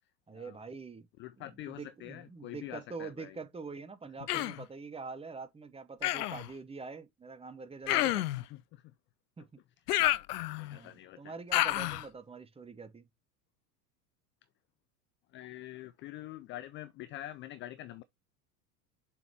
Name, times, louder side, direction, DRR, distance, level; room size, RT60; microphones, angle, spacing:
voice 1, 0.3-1.1 1.4-8.3 9.4-9.5 10.7-13.0, right 4 dB, 10° right, 0.9 m, -45 dB
voice 2, 1.2-3.4 4.2-4.6 8.5-8.9 10.1-11.3 15.3-18.0, left 14 dB, 25° left, 0.4 m, -46 dB
Human voice, 4.3-4.6 6.0-6.5 7.9-8.4 9.9-10.8 11.5-12.0, left 16 dB, 65° left, 0.6 m, -29 dB
7.2 x 5.1 x 2.9 m
figure-of-eight pair, 80°, 49 cm